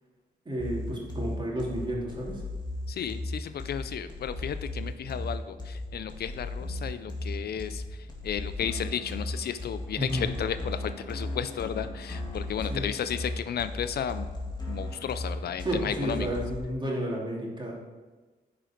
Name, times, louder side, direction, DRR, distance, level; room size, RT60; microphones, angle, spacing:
voice 1, 0.4-2.4 10.0-10.3 12.6-12.8 15.6-17.7, right 1 dB, 25° right, -3 dB, 2.9 m, -31 dB
sound 1, 0.6-16.6, left 1 dB, 25° left, 2.3 m, -36 dB
voice 2, 2.9-7.8 8.2-14.3 14.7-16.4, left 8 dB, 65° left, 12 dB, 0.5 m, -33 dB
10.0 x 5.1 x 4.4 m, 1.3 s
cardioid pair, 70°, 17 cm